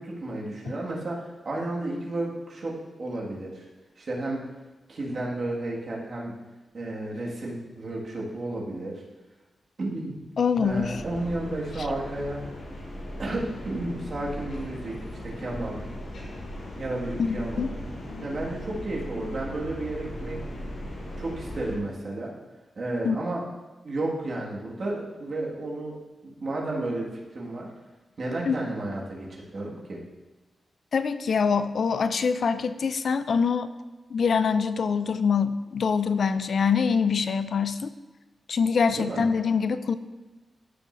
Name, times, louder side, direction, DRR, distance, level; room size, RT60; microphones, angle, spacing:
voice 1, 0.0-3.7 4.0-4.5 4.9-6.4 6.7-9.0 9.8-10.3 10.6-12.5 13.2-15.8 16.7-17.7 18.2-20.4 21.2-22.3 22.8-23.4 23.8-26.0 26.2-27.7 28.2-30.0 38.9-39.2, right 2 dB, 50° right, -4 dB, 1.9 m, -32 dB
voice 2, 10.4-11.0 17.2-17.7 23.0-23.2 28.5-28.6 30.9-33.7 34.1-37.9 38.5-40.0, left 6 dB, 60° left, 12 dB, 0.3 m, -24 dB
sound 1, 10.6-21.8, left 1 dB, 80° left, 2.3 m, -38 dB
14.0 x 6.4 x 2.6 m, 1.1 s
wide cardioid pair, 150°, 0 cm